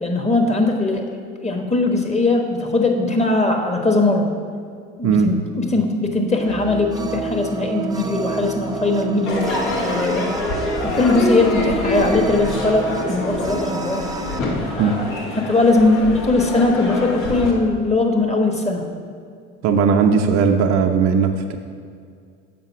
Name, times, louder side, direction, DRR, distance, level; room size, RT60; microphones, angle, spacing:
voice 1, 0.0-1.1 1.4-4.3 5.0-10.3 10.8-14.0 14.7-14.9 15.3-18.8, left 2 dB, 20° left, 3 dB, 1.2 m, -20 dB
voice 2, 5.0-5.3 14.8-15.0 19.6-21.6, right 5 dB, 50° right, 4 dB, 0.7 m, -17 dB
sound 1, 6.4-14.4, right 5 dB, 10° right, 0.3 m, -29 dB
Crowd / Fireworks, 9.3-17.5, left 2 dB, 60° left, 1.5 m, -26 dB
6.8 x 5.5 x 5.9 m, 2.2 s
figure-of-eight pair, 55°, 36 cm